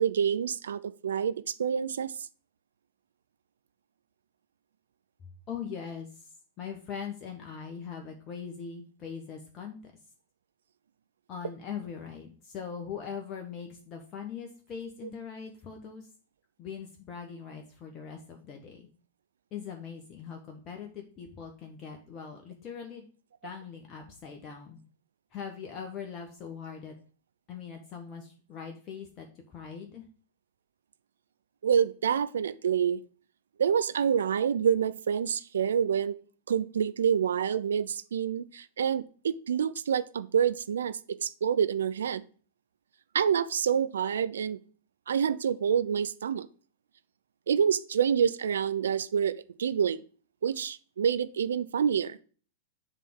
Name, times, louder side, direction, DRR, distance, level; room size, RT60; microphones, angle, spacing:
voice 1, 0.0-2.1 31.6-33.0 33.6-36.1 36.5-42.2 43.1-44.6 45.1-46.5 47.5-50.0 50.4-52.2, right 8 dB, 70° right, 14 dB, 0.5 m, -27 dB
voice 2, 5.5-6.3 6.6-9.8 11.3-16.1 16.6-18.9 19.5-23.0 23.4-24.8 25.3-26.9 27.5-30.0, left 7 dB, 35° left, 2 dB, 1.1 m, -41 dB
7.3 x 3.5 x 5.9 m, 0.40 s
figure-of-eight pair, 95°, 0 cm